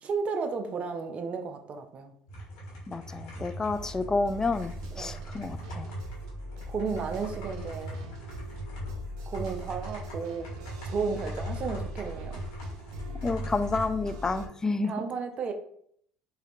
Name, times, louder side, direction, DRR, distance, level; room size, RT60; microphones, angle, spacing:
voice 1, 0.0-2.1 4.9-5.2 6.7-8.0 9.3-10.5 10.8-12.3 14.8-15.5, right 5 dB, 45° right, 6 dB, 0.6 m, -33 dB
sound 1, 2.3-13.8, equal, 85° left, 1.6 m, -40 dB
voice 2, 2.9-5.9 13.2-14.9, left 3 dB, 20° left, 11 dB, 0.4 m, -30 dB
sound 2, 3.7-14.5, equal, 90° right, 0.6 m, -41 dB
4.9 x 2.7 x 3.0 m, 0.66 s
supercardioid pair, 80°, 3 cm